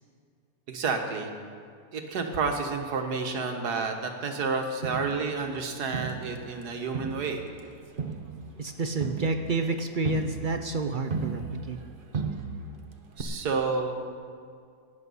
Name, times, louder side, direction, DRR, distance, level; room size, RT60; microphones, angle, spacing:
voice 1, 0.7-1.3 1.9-7.4 13.2-13.9, right 4 dB, 80° right, 5 dB, 1.8 m, -30 dB
Crowd, 4.8-6.6 6.9-11.9 12.1-12.8 13.2-13.3, right 4 dB, 40° right, 1.0 m, -35 dB
voice 2, 8.6-11.8, right 3 dB, 60° right, 6 dB, 0.5 m, -29 dB
17.0 x 10.5 x 5.5 m, 2.2 s
omnidirectional pair, 1.7 m